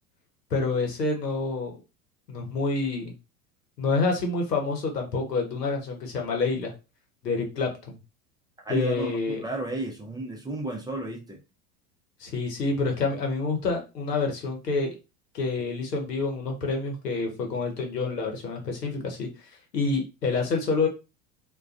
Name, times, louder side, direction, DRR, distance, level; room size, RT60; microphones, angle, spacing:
voice 1, 0.5-1.7 2.3-3.1 3.8-6.7 7.2-8.0 8.7-9.4 12.2-15.0 15.3-19.3 19.7-20.9, left 3 dB, 90° left, 2 dB, 0.9 m, -27 dB
voice 2, 8.6-11.4, right 2 dB, 10° right, 0 dB, 0.5 m, -32 dB
2.3 x 2.3 x 2.4 m, 0.28 s
hypercardioid pair, 80°, 47 cm